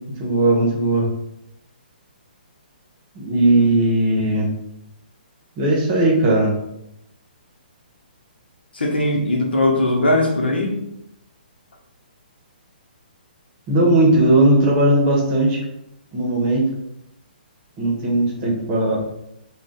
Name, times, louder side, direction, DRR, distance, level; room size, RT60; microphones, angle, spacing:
voice 1, 0.2-1.1 3.1-4.5 5.6-6.5 13.7-15.6 16.1-16.7 17.8-19.0, right 1 dB, 30° right, -3 dB, 1.0 m, -17 dB
voice 2, 8.7-10.7, left 1 dB, 85° left, 0 dB, 0.8 m, -19 dB
2.5 x 2.4 x 3.6 m, 0.82 s
hypercardioid pair, 140°, 5 cm